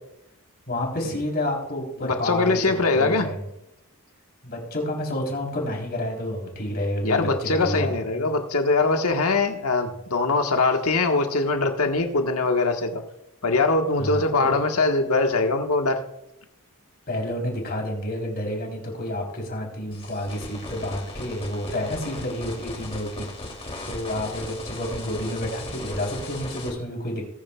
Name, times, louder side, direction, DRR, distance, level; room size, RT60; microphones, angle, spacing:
voice 1, 0.7-3.5 4.4-8.2 14.0-14.6 17.1-23.3 23.9-27.3, left 1 dB, 45° left, 0 dB, 3.7 m, -29 dB
voice 2, 2.0-3.3 7.0-13.0 13.4-16.0, left 3 dB, 75° left, 4 dB, 1.5 m, -22 dB
sound 1, 19.9-26.7, left 1 dB, 25° left, 2.9 m, -37 dB
20.0 x 10.0 x 2.4 m, 0.84 s
head